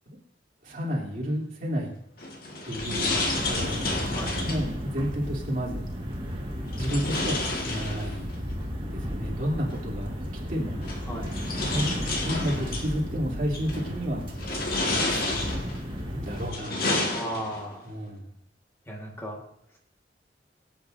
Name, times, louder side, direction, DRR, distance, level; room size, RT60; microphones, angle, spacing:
voice 1, 0.6-1.9 2.7-3.9 4.4-5.8 6.6-8.3 8.9-10.1 10.5-10.8 11.6-14.3 14.9-15.4 16.1-16.9 17.8-18.3, equal, 50° right, -3 dB, 3.0 m, -31 dB
sound 1, 2.2-4.7 6.7-8.4 9.7-9.8 10.8-12.9 13.5-13.9 14.4-15.8 16.3-17.7, left 2 dB, 55° left, 1.8 m, -30 dB
sound 2, 2.7-16.5, equal, 30° right, 1.8 m, -34 dB
voice 2, 17.1-17.8 18.9-19.4, right 1 dB, 15° left, 0 dB, 1.6 m, -35 dB
23.0 x 8.5 x 2.6 m, 0.72 s
head